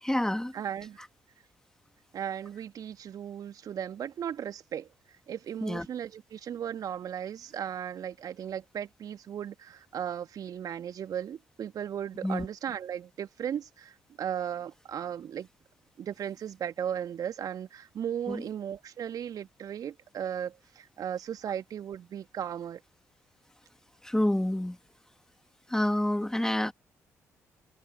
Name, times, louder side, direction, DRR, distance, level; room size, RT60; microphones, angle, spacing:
voice 1, 0.0-0.5 5.6-5.9 12.2-12.5 18.3-18.5 24.0-24.8 25.7-26.7, left 1 dB, 5° left, 2.8 m, -28 dB
voice 2, 0.5-1.0 2.1-4.9 5.3-15.5 16.0-22.8, right 9 dB, 55° right, 2.2 m, -36 dB
figure-of-eight pair, 40°, 8 cm